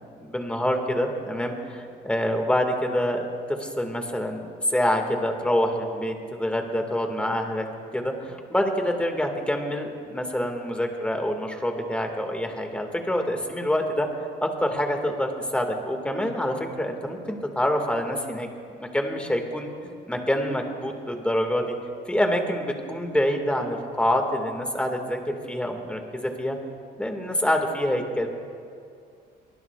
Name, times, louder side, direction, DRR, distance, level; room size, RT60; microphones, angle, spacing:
voice 1, 0.2-3.3 3.6-7.7 7.9-14.1 14.4-18.5 18.8-21.7 22.1-26.6 27.0-28.3, left 1 dB, 5° left, 3 dB, 1.8 m, -26 dB
23.0 x 19.5 x 2.4 m, 2.4 s
cardioid pair, 110°, 17 cm